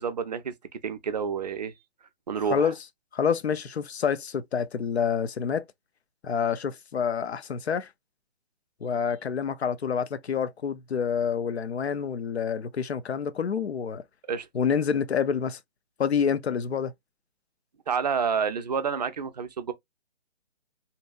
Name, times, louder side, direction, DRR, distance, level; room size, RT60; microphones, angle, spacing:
voice 1, 0.0-1.7 2.3-2.7 14.3-14.5 17.9-19.7, right 6 dB, 40° right, 0.4 m, -29 dB
voice 2, 3.1-5.6 6.2-7.9 8.8-14.0 14.5-15.6 16.0-16.9, left 7 dB, 80° left, 0.5 m, -27 dB
2.7 x 2.2 x 2.2 m
figure-of-eight pair, 140°, 32 cm